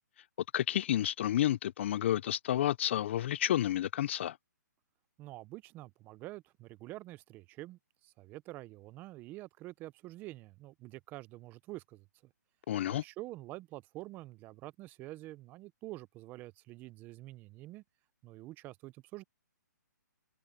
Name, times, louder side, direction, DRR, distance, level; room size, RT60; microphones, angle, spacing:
voice 1, 0.5-4.3 12.7-13.0, left 12 dB, 40° left, 0.4 m, -30 dB
voice 2, 5.2-12.3 12.9-17.8 18.2-19.2, right 18 dB, 20° right, 0.7 m, -47 dB
hypercardioid pair, 155°, 10 cm